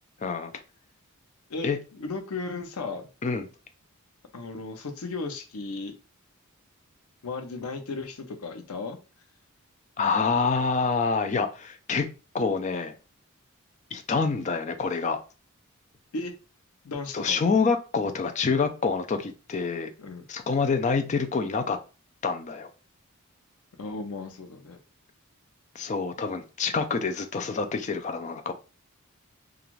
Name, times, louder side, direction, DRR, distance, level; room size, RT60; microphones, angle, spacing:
voice 1, 0.2-0.5 1.6-1.8 3.2-3.5 10.0-13.0 13.9-15.2 17.1-19.9 20.3-21.8 22.2-22.7 25.8-28.5, left 4 dB, 35° left, 8 dB, 0.3 m, -27 dB
voice 2, 1.5-3.1 4.3-5.9 7.2-9.0 16.1-16.3 16.8-17.5 20.0-20.2 23.8-24.8, left 3 dB, 85° left, 5 dB, 0.7 m, -35 dB
2.5 x 2.3 x 3.1 m, 0.33 s
head